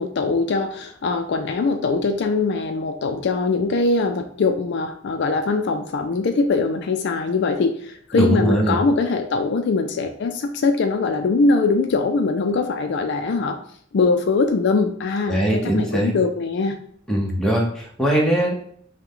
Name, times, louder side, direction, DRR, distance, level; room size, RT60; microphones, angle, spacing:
voice 1, 0.0-13.6 13.9-16.8, left 3 dB, 60° left, 6 dB, 0.4 m, -22 dB
voice 2, 8.1-8.8 15.3-16.1 17.1-18.5, right 1 dB, 5° left, -2 dB, 0.8 m, -20 dB
5.7 x 2.2 x 3.7 m, 0.62 s
head